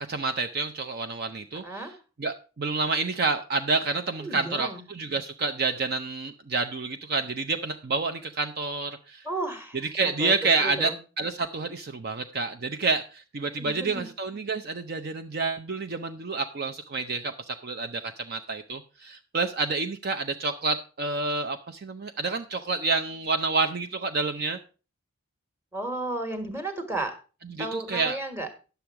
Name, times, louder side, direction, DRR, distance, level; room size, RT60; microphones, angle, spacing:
voice 1, 0.0-9.3 9.7-24.6 27.5-28.2, right 3 dB, 45° right, 7 dB, 0.5 m, -29 dB
voice 2, 4.2-4.8 9.2-10.3 10.6-11.0 13.6-14.1 25.7-27.1 27.6-28.5, right 2 dB, 10° right, 6 dB, 1.4 m, -33 dB
10.5 x 6.9 x 4.6 m, 0.35 s
head